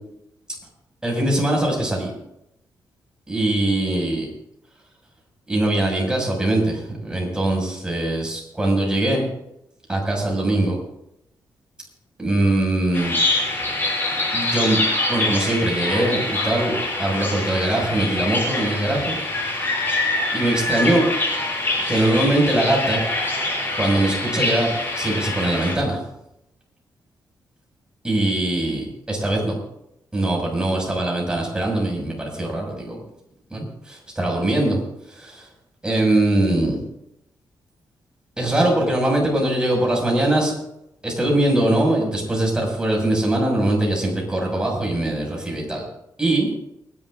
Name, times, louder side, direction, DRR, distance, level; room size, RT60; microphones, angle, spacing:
voice 1, 1.0-2.1 3.3-4.3 5.5-9.3 9.9-10.8 12.2-13.2 14.3-14.8 15.1-19.1 20.3-21.1 21.9-23.0 23.8-26.0 28.0-29.5 30.1-33.0 33.5-34.8 35.1-35.5 35.8-36.8 38.4-40.5 41.0-45.8 46.2-46.5, right 1 dB, 10° right, -1 dB, 6.3 m, -22 dB
Bird vocalization bird call bird song, 12.9-25.8, left 2 dB, 30° left, 6.7 m, -24 dB
29.0 x 11.5 x 2.6 m, 0.82 s
cardioid pair, 115°, 7 cm